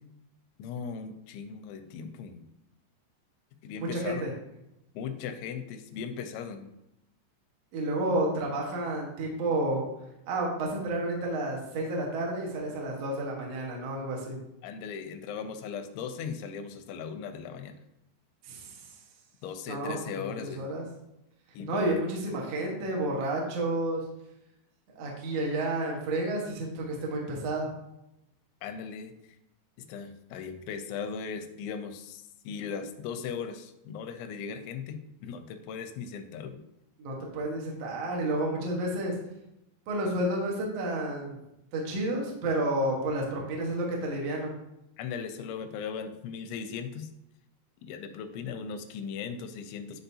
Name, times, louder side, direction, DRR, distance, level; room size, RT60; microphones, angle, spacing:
voice 1, 0.6-2.5 3.6-4.2 5.0-6.7 14.6-17.8 19.4-20.7 21.5-22.0 28.6-29.1 29.8-36.6 45.0-47.1 47.8-50.0, left 6 dB, 85° left, 7 dB, 3.0 m, -38 dB
voice 2, 3.8-4.3 7.7-9.8 10.3-14.4 18.4-18.9 19.7-20.8 21.7-24.0 24.9-27.7 37.0-39.1 39.9-41.4 41.7-44.5, right 1 dB, 75° right, -2 dB, 1.4 m, -30 dB
10.5 x 4.0 x 2.8 m, 0.85 s
omnidirectional pair, 5.2 m